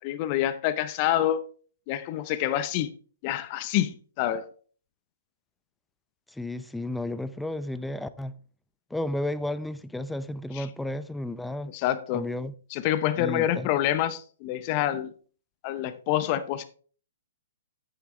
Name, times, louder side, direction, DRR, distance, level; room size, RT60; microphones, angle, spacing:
voice 1, 0.0-1.4 1.9-2.9 3.2-4.5 10.5-10.7 11.7-12.3 12.7-15.1 15.6-16.6, left 12 dB, 35° left, 0.8 m, -27 dB
voice 2, 6.3-8.3 8.9-11.7 12.1-12.5 13.2-13.7, left 1 dB, 5° left, 0.6 m, -32 dB
10.0 x 9.1 x 3.2 m
figure-of-eight pair, 125°, 0 cm